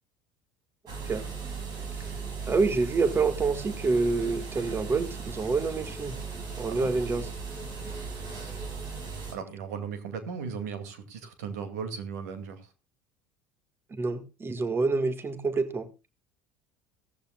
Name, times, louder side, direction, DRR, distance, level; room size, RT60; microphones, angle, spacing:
sound 1, 0.9-9.4, right 5 dB, 55° right, 6.2 m, -37 dB
voice 1, 2.5-6.1 6.6-7.3 13.9-15.9, right 4 dB, 25° right, 10 dB, 1.7 m, -27 dB
voice 2, 9.3-12.7, right 6 dB, 75° right, 9 dB, 2.3 m, -37 dB
17.0 x 14.0 x 2.3 m, 0.27 s
hypercardioid pair, 70°, 9 cm